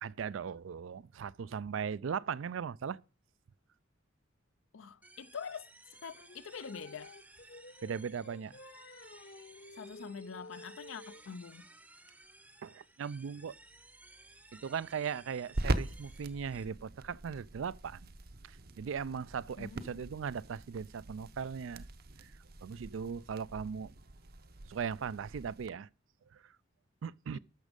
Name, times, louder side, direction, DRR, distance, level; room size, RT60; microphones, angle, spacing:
voice 1, 0.0-3.0 7.8-8.5 12.6-13.5 14.5-18.1 18.5-21.9 22.2-22.3 22.6-23.9 24.7-25.9 26.3-26.5 27.0-27.4, right 6 dB, 75° right, 0.4 m, -38 dB
voice 2, 4.7-7.1 9.8-11.7 19.6-20.1 27.3-27.4, left 6 dB, 80° left, 0.5 m, -45 dB
sound 1, 5.0-16.6, right 2 dB, 10° right, 0.7 m, -58 dB
Singing, 6.1-11.3, left 2 dB, 55° left, 0.9 m, -52 dB
sound 2, 13.5-25.7, right 2 dB, 50° right, 0.8 m, -42 dB
13.0 x 6.2 x 5.1 m
head